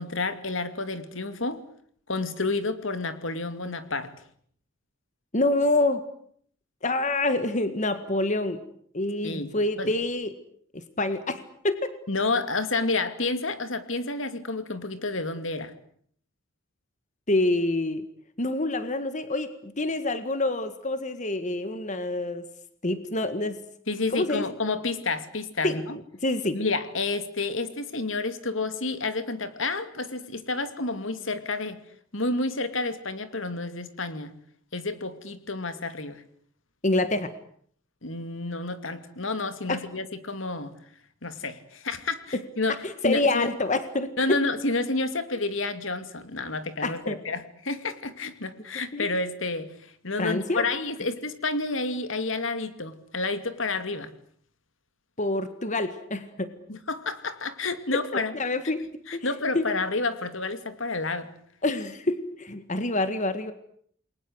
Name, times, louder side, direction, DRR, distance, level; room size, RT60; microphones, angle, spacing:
voice 1, 0.0-1.6 2.1-4.1 9.2-9.5 9.8-9.9 12.1-15.7 23.9-26.0 26.5-31.8 32.1-34.3 34.7-36.2 38.0-40.8 41.2-42.8 43.0-43.5 44.2-49.7 50.0-54.1 56.7-58.3 59.1-61.3, left 3 dB, 75° left, 10 dB, 2.6 m, -30 dB
voice 2, 5.3-6.0 6.8-8.6 8.9-10.4 10.7-12.0 17.3-18.0 18.4-22.4 22.8-23.6 24.1-24.4 25.6-25.8 26.2-26.6 36.8-37.3 39.7-39.8 42.3-42.4 42.8-44.4 46.8-47.2 48.9-49.1 50.2-50.6 55.2-56.5 58.1-58.8 59.1-59.3 59.5-59.6 61.6-63.5, left 2 dB, 40° left, 10 dB, 1.8 m, -27 dB
29.0 x 22.0 x 8.1 m, 0.63 s
head